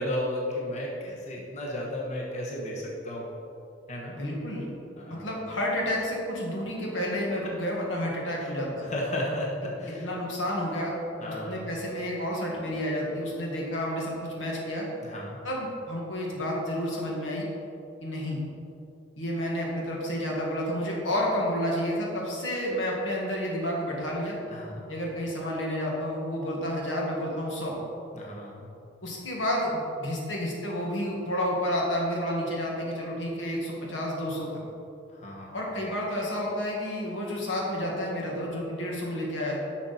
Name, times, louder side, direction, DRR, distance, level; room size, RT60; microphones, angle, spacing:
voice 1, 0.0-3.3 3.9-4.1 5.0-5.3 7.1-7.2 8.4-8.5 8.9-10.1 11.2-11.7 15.0-15.4 24.5-24.9 28.1-28.7 35.1-35.6, left 1 dB, 40° left, -3 dB, 1.2 m, -34 dB
voice 2, 4.1-4.7 5.1-8.9 10.0-10.9 11.5-14.9 15.4-17.5 18.0-18.4 19.2-24.4 24.9-27.8 29.0-34.6 35.5-39.6, equal, 85° left, -3 dB, 1.9 m, -30 dB
10.5 x 6.1 x 4.2 m, 2.7 s
head